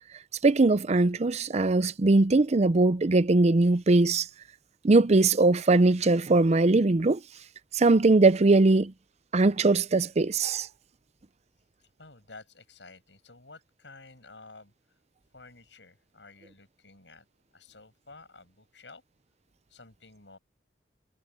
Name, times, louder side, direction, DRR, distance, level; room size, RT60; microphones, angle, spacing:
voice 1, 0.4-4.3 4.8-7.2 7.7-8.9 9.3-10.7, right 3 dB, 40° right, 0.6 m, -21 dB
voice 2, 11.8-15.0 15.3-17.3 17.5-19.0 19.7-20.4, left 3 dB, 80° left, 7.5 m, -52 dB
head